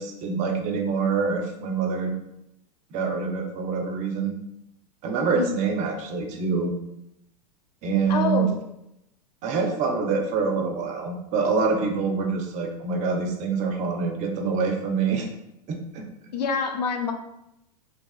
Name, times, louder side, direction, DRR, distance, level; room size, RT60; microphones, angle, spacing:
voice 1, 0.0-2.1 2.9-4.4 5.0-6.7 7.8-8.5 9.4-15.3 15.7-16.0, right 5 dB, 35° right, 4 dB, 0.4 m, -25 dB
voice 2, 8.1-8.5 16.3-17.1, left 5 dB, 80° left, 5 dB, 0.4 m, -26 dB
2.5 x 2.3 x 2.3 m, 0.84 s
hypercardioid pair, 100°, 21 cm